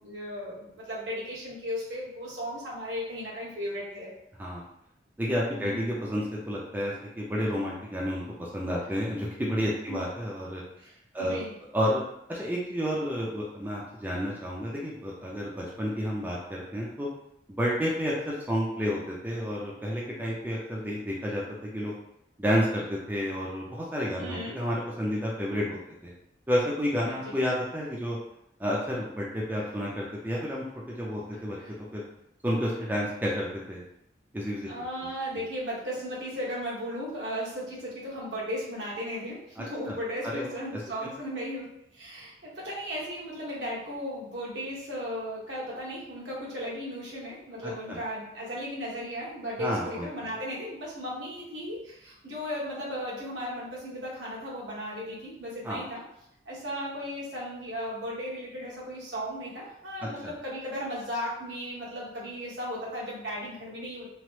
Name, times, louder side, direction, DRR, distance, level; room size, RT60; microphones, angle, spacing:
voice 1, 0.0-4.1 5.6-5.7 9.9-10.0 10.8-10.9 11.2-11.5 24.2-24.6 27.1-27.3 31.6-31.7 34.7-56.0 56.4-64.1, equal, 80° right, -6 dB, 1.1 m, -36 dB
voice 2, 5.2-10.6 11.1-11.4 11.7-12.0 12.3-17.1 17.5-21.9 22.4-26.1 26.5-28.2 28.6-31.6 31.9-32.0 32.4-33.8 34.3-34.7 39.6-39.9 40.2-40.5 41.0-41.1 47.6-48.0 49.6-50.3 55.6-55.8 60.0-60.3, equal, 10° right, -4 dB, 0.4 m, -30 dB
2.9 x 2.0 x 3.1 m, 0.78 s
head